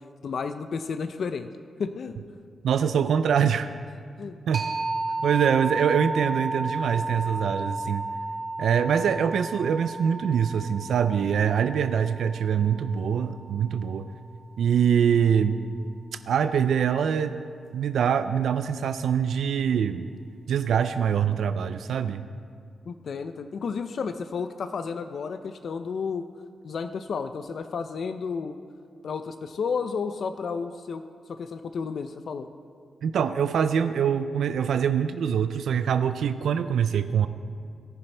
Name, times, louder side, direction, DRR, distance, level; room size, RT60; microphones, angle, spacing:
voice 1, 0.2-1.5 1.8-2.2 4.2-4.4 22.9-26.3 26.6-28.6 29.0-31.0 31.3-32.5, left 5 dB, 50° left, 9 dB, 0.4 m, -32 dB
voice 2, 2.6-3.7 4.5-4.7 5.2-8.1 8.6-14.1 14.6-15.6 16.3-17.4 17.7-20.1 20.5-22.2 33.0-37.3, right 8 dB, 80° right, 10 dB, 0.4 m, -24 dB
sound 1, 4.5-13.9, right 2 dB, 45° right, 1.1 m, -33 dB
17.5 x 10.5 x 3.3 m, 2.3 s
wide cardioid pair, 170°, 0 cm